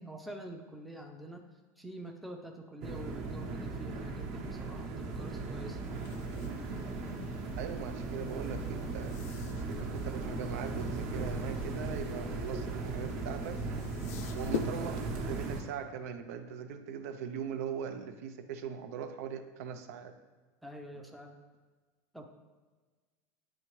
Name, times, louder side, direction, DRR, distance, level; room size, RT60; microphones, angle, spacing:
voice 1, 0.0-1.5 1.8-5.8 20.6-21.4 22.1-22.3, right 1 dB, ahead, 2 dB, 0.4 m, -46 dB
sound 1, 2.8-15.6, right 3 dB, 50° right, 0.9 m, -37 dB
sound 2, 5.8-15.6, left 8 dB, 80° left, 0.4 m, -45 dB
voice 2, 7.6-9.1 9.8-13.6 14.3-20.1, right 7 dB, 90° right, 7 dB, 0.6 m, -40 dB
8.9 x 3.5 x 3.1 m, 1.3 s
cardioid pair, 160°, 8 cm